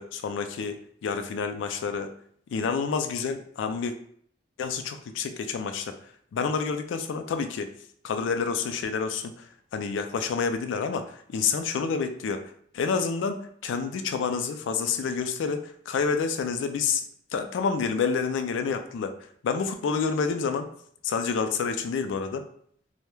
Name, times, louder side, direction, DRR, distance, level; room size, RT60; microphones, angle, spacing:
voice 1, 0.0-2.1 2.5-3.9 4.6-5.9 6.3-7.7 8.0-9.5 9.7-17.0 17.3-19.1 19.4-20.7 21.0-22.4, left 5 dB, 85° left, 8 dB, 0.3 m, -28 dB
2.2 x 2.0 x 3.0 m, 0.63 s
head